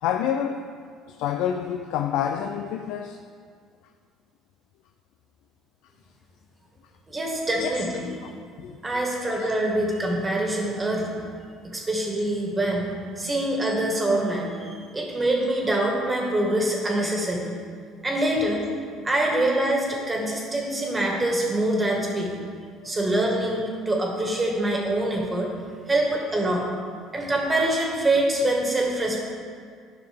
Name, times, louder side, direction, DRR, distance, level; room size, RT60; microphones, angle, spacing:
voice 1, 0.0-0.7 1.1-3.2 7.6-7.7 8.2-8.3 8.6-8.8 9.3-9.5 22.8-23.1, left 9 dB, 75° left, 6 dB, 0.4 m, -28 dB
voice 2, 7.1-8.1 8.8-11.1 11.7-12.9 13.2-17.6 18.0-18.6 19.0-22.3 22.8-25.5 25.9-26.7 27.1-29.2, right 1 dB, 20° right, -1 dB, 1.8 m, -25 dB
11.0 x 5.9 x 3.5 m, 2.1 s
supercardioid pair, 100°, 0 cm